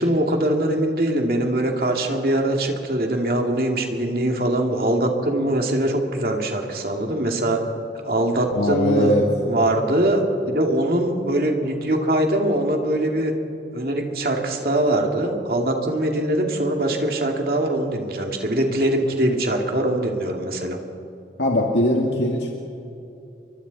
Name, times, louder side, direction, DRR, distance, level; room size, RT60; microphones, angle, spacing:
voice 1, 0.0-7.6 8.0-9.2 9.5-13.3 13.7-20.8, right 1 dB, 55° right, 2 dB, 2.5 m, -22 dB
voice 2, 8.5-9.3 21.4-22.6, left 1 dB, 85° left, -1 dB, 2.1 m, -20 dB
30.0 x 23.5 x 4.2 m, 2.6 s
head